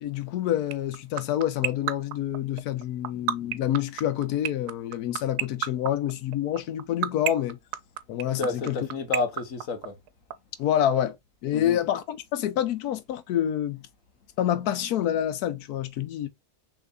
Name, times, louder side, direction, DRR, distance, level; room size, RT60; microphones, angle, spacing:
voice 1, 0.0-7.6 8.1-8.4 8.7-8.8 10.6-11.2 11.4-13.8 14.4-16.3, left 11 dB, 80° left, 1.2 m, -27 dB
sound 1, 0.7-10.3, right 12 dB, 90° right, 1.1 m, -26 dB
voice 2, 8.3-9.9 11.5-11.8, left 3 dB, 60° left, 1.4 m, -30 dB
6.0 x 2.9 x 2.3 m
omnidirectional pair, 1.6 m